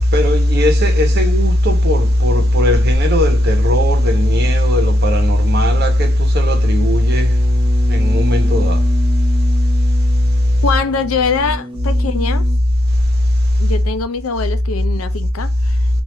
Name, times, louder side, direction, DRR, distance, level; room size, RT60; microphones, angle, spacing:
voice 1, 0.1-7.3 7.9-8.8, left 1 dB, 50° right, 1.0 m, -14 dB
sound 1, 7.1-12.6, equal, 25° right, 0.3 m, -31 dB
voice 2, 10.6-12.5 13.6-15.9, left 5 dB, 85° left, 0.6 m, -22 dB
3.2 x 2.6 x 3.8 m
head